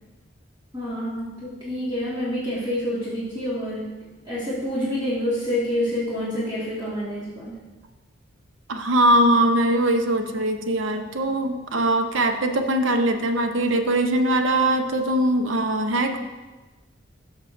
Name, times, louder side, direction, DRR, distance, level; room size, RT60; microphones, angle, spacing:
voice 1, 0.7-3.9 4.2-7.6, left 1 dB, 20° right, -10 dB, 1.7 m, -27 dB
voice 2, 8.7-16.2, right 1 dB, 80° right, 6 dB, 0.7 m, -21 dB
13.0 x 6.3 x 2.5 m, 1.2 s
head